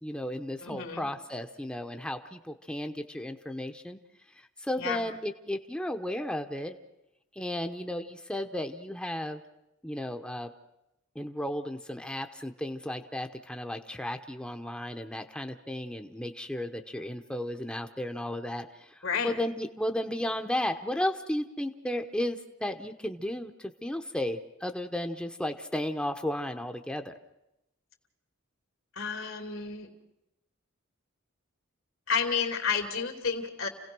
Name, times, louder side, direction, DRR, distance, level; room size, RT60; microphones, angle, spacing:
voice 1, 0.0-4.0 4.4-6.8 7.3-9.4 9.8-10.5 11.1-27.1, left 1 dB, 5° left, 5 dB, 0.9 m, -34 dB
voice 2, 0.6-1.1 4.8-5.0 19.0-19.3 29.0-29.9 32.1-33.7, left 6 dB, 80° left, 4 dB, 2.7 m, -31 dB
28.5 x 17.0 x 6.1 m, 0.88 s
head